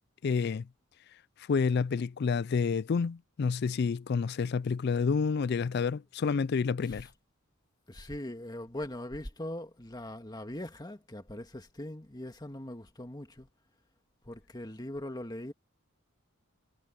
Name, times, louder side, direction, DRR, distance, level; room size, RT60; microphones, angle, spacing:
voice 1, 0.2-0.7 1.5-7.1, left 5 dB, 50° left, 0.4 m, -29 dB
voice 2, 7.9-13.5 14.2-15.5, left 1 dB, 20° left, 2.0 m, -41 dB
head